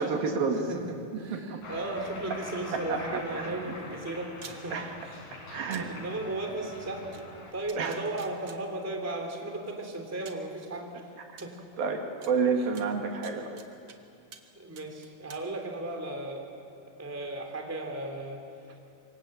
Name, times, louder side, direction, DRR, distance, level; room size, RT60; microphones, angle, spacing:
voice 1, 0.0-0.7 1.3-1.6 2.7-3.5 4.7-5.0 5.5-5.9 7.8-8.0 11.3-11.4 11.8-13.6, right 5 dB, 75° right, 3 dB, 3.8 m, -30 dB
voice 2, 0.7-4.8 5.0-5.4 5.8-7.2 7.5-11.0 11.4-11.6 12.6-12.7 13.3-13.6 14.6-16.4 17.0-18.4, right 2 dB, 5° right, 3 dB, 2.4 m, -36 dB
Cheering, 1.6-7.5, left 2 dB, 55° left, 4.9 m, -44 dB
sound 1, 4.4-4.6 5.7-5.8 7.1-7.2 7.7-8.6 9.6-9.7 10.3-10.5 11.4-11.5 12.2-12.3 12.8-14.0 14.3-14.5 14.8-15.4, right 6 dB, 50° right, 1.9 m, -48 dB
27.0 x 25.0 x 7.8 m, 2.5 s
omnidirectional pair, 4.3 m